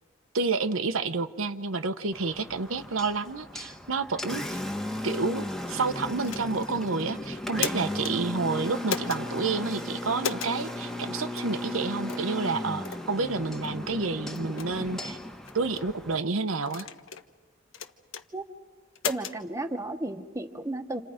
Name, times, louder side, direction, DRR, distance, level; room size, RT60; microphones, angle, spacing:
voice 1, 0.3-4.6 5.0-15.2 15.5-16.9, right 4 dB, 90° right, 9 dB, 1.0 m, -29 dB
Engine, 2.1-16.2, left 1 dB, ahead, 1.2 m, -36 dB
sound 1, 6.2-6.7 7.4-8.1 8.9-9.2 10.2-10.6 11.4-11.5 12.1-12.3 12.8-13.0 13.6-13.8 14.3-14.7 15.5-15.9 16.7-17.3 17.7-18.2 19.0-19.4, left 6 dB, 80° left, 1.1 m, -34 dB
voice 2, 19.0-21.0, right 2 dB, 15° right, 7 dB, 1.1 m, -33 dB
30.0 x 27.5 x 5.1 m, 1.3 s
head